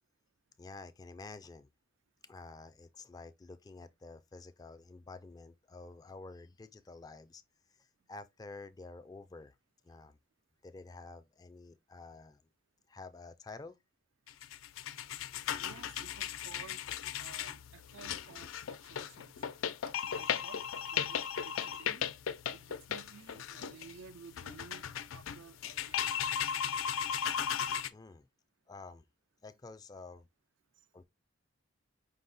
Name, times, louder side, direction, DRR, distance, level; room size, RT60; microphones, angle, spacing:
voice 1, 0.6-1.7 2.2-7.4 7.8-9.5 9.8-10.2 10.6-12.4 12.9-13.8 27.9-28.3 28.7-29.0 29.4-30.3 30.9-31.0, left 3 dB, 20° left, 0.3 m, -50 dB
sound 1, 14.3-27.9, left 8 dB, 90° left, 0.4 m, -36 dB
voice 2, 15.6-16.8 17.2-19.4 20.1-22.1 22.5-26.0, right 6 dB, 75° right, 0.4 m, -54 dB
5.3 x 2.0 x 3.9 m
head